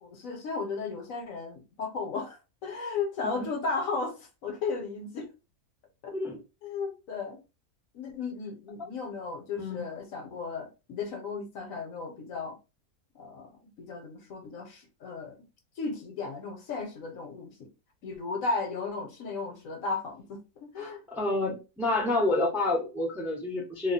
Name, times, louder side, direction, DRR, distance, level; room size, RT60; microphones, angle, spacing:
voice 1, 0.0-5.3 6.0-6.1 6.6-7.4 7.9-12.6 13.1-15.4 15.8-17.7 18.0-21.0, left 4 dB, 65° left, 1.2 m, -35 dB
voice 2, 20.8-23.9, left 2 dB, ahead, 0.5 m, -29 dB
2.7 x 2.2 x 4.0 m
omnidirectional pair, 1.6 m